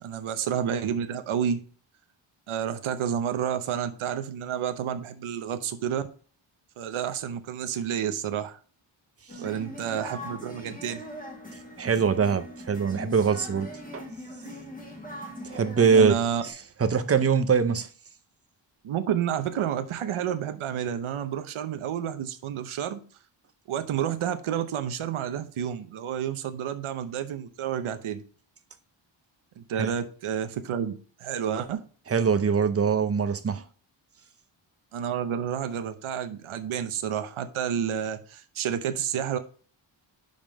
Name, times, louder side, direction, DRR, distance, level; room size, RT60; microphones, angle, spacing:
voice 1, 0.0-1.6 2.5-6.0 6.8-8.6 9.4-11.0 15.9-16.4 18.8-23.0 23.7-28.2 29.6-30.9 31.2-31.8 34.9-39.4, right 9 dB, 75° right, 0.8 m, -30 dB
sound 1, 9.3-16.5, equal, 15° left, 1.6 m, -41 dB
voice 2, 11.8-14.1 15.4-16.1 16.4-16.5 16.8-17.9 29.8-29.9 32.1-33.6, right 6 dB, 30° right, 0.6 m, -23 dB
5.5 x 5.2 x 5.1 m
wide cardioid pair, 150°, 49 cm